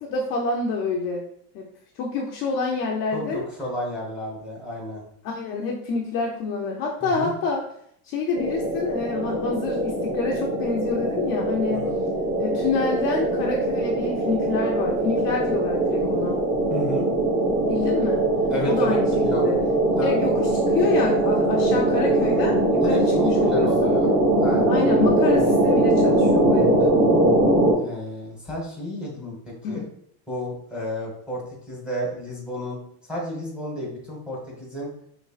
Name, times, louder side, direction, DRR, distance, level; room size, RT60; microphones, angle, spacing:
voice 1, 0.0-1.2 1.5-1.7 2.0-3.4 5.2-7.6 8.0-11.9 12.4-16.4 17.7-18.2 18.7-19.6 20.0-23.9 24.7-26.7 29.6-29.9, left 4 dB, 35° left, -1 dB, 0.5 m, -27 dB
voice 2, 3.1-5.0 7.0-7.3 11.7-12.0 16.7-17.1 18.5-19.5 19.9-20.3 22.2-24.1 24.4-24.8 27.8-29.8 30.3-31.4 31.7-34.9, equal, 5° right, -5 dB, 1.0 m, -32 dB
sound 1, 8.3-27.7, right 1 dB, 30° right, 1.0 m, -21 dB
5.0 x 3.2 x 2.4 m, 0.66 s
cardioid pair, 170°, 34 cm